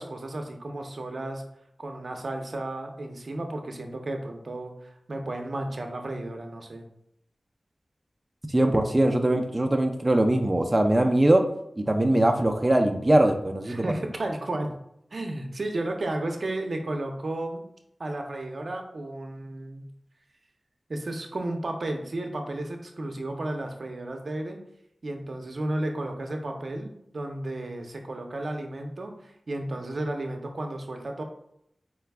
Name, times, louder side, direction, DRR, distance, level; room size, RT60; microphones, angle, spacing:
voice 1, 0.0-1.4 1.8-6.8 13.7-14.7 15.1-17.6 18.0-19.8 20.9-24.6 25.0-31.2, right 1 dB, 65° right, 3 dB, 0.6 m, -33 dB
voice 2, 8.5-11.4 11.8-13.8, right 1 dB, 25° right, 3 dB, 0.5 m, -21 dB
4.7 x 2.2 x 3.4 m, 0.75 s
cardioid pair, 45°, 0 cm